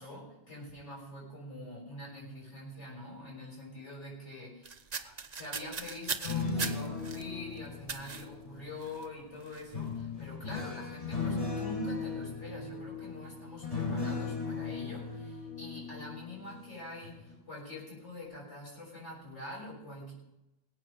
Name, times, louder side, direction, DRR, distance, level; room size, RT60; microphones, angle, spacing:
voice 1, 0.0-20.1, left 1 dB, 90° left, -4 dB, 6.8 m, -45 dB
sound 1, 4.6-7.2 7.9-8.3 8.8-9.0 9.4-9.6, right 5 dB, 40° right, 0.9 m, -38 dB
sound 2, 6.1-8.9 9.7-16.7 17.0-17.3, left 4 dB, 30° left, 4.7 m, -37 dB
20.5 x 8.7 x 5.2 m, 0.93 s
omnidirectional pair, 1.2 m